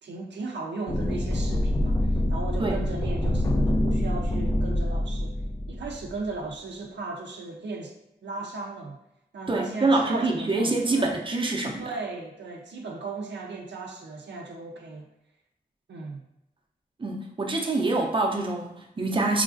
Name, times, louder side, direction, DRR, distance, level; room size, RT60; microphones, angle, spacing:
voice 1, 0.0-8.0 8.2-9.0 9.3-11.2 11.8-15.1 15.9-16.3, right 3 dB, 80° right, 1 dB, 0.4 m, -37 dB
sound 1, 0.9-6.3, left 1 dB, 20° left, 0.3 m, -26 dB
voice 2, 9.5-11.9 17.0-19.4, right 2 dB, 30° right, 0 dB, 0.5 m, -25 dB
3.1 x 2.3 x 2.5 m, 0.85 s
cardioid pair, 55°, 18 cm